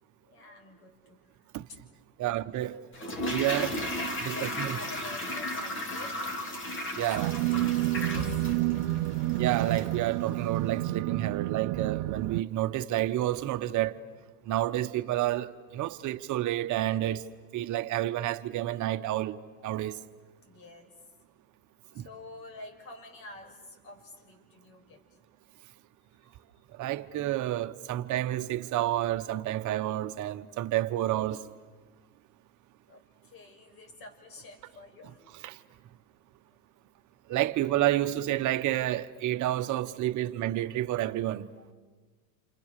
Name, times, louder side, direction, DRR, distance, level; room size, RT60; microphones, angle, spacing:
voice 1, 0.2-1.5 2.2-2.4 3.5-3.7 4.3-6.4 7.0-7.1 7.5-8.6 8.8-8.9 9.3-9.5 19.6-19.7 20.2-21.3 21.9-25.2 26.1-26.5 32.9-35.2 41.2-41.3 41.6-41.7, left 2 dB, 50° left, 6.7 m, -49 dB
voice 2, 2.2-2.8 3.3-3.7 4.2-4.8 7.0-7.3 9.4-14.0 14.5-17.2 17.5-19.4 19.6-20.0 22.0-22.1 26.8-31.4 35.4-35.5 37.3-41.5, right 14 dB, 40° right, 1.2 m, -29 dB
Toilet flush, 2.9-10.0 10.3-10.4, left 1 dB, 25° left, 3.0 m, -35 dB
sound 1, 7.2-12.4, right 17 dB, 60° right, 0.8 m, -29 dB
28.5 x 28.5 x 6.7 m
supercardioid pair, 115°, 44 cm